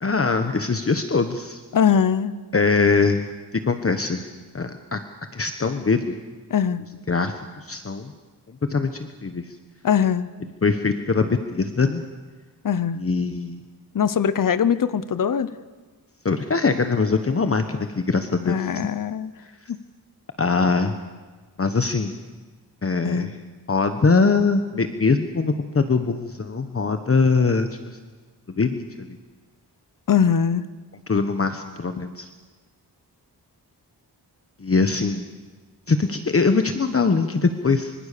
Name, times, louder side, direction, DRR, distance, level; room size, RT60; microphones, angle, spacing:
voice 1, 0.0-1.6 2.5-3.3 3.7-4.3 4.5-5.0 5.3-6.1 7.1-8.1 8.7-9.4 10.6-12.0 13.0-13.6 16.2-18.7 20.4-20.9 21.6-22.2 22.8-23.3 23.7-28.0 28.6-29.1 31.1-32.3 34.6-35.2 35.9-37.9, left 4 dB, 35° left, 8 dB, 1.2 m, -22 dB
voice 2, 1.7-2.3 6.5-6.8 9.8-10.3 12.6-13.0 13.9-15.5 18.4-19.3 19.7-19.8 23.0-23.3 30.1-30.6, left 7 dB, 50° left, 14 dB, 1.0 m, -21 dB
25.5 x 25.0 x 6.8 m, 1.4 s
wide cardioid pair, 130°, 41 cm